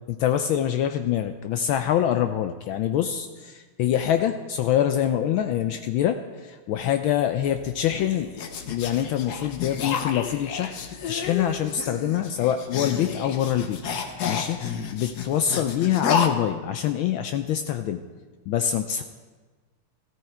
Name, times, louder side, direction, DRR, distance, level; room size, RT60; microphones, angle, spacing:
voice 1, 0.1-8.3 8.6-13.8 14.2-18.0 18.5-19.0, left 10 dB, 75° left, 8 dB, 1.3 m, -25 dB
sound 1, 7.5-16.3, left 6 dB, 55° left, 1.2 m, -31 dB
14.0 x 13.5 x 4.5 m, 1.4 s
omnidirectional pair, 2.4 m